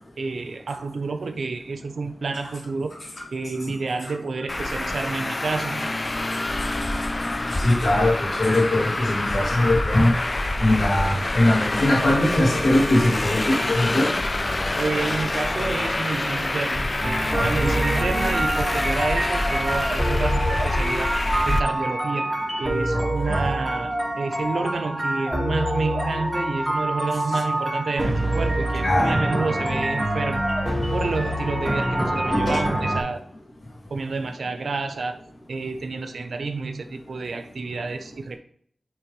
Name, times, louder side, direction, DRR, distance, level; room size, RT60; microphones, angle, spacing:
voice 1, 0.2-2.9 3.3-5.9 8.4-8.5 14.8-21.1 21.5-22.3 22.6-30.5 30.9-33.2 33.9-35.2 35.5-38.4, right 4 dB, 85° right, 8 dB, 0.7 m, -29 dB
Traffic noise roadway noise, 4.5-21.6, left 2 dB, 40° left, 0.5 m, -26 dB
voice 2, 6.5-7.1 7.5-10.2 10.6-14.1 17.3-17.7 18.0-18.1 22.9-23.5 27.3-27.4 28.8-29.3 32.3-32.6, left 1 dB, 70° left, -1 dB, 2.0 m, -22 dB
sound 1, 17.0-33.0, right 1 dB, ahead, 2.5 m, -26 dB
8.9 x 3.5 x 3.1 m, 0.62 s
wide cardioid pair, 55°, 0 cm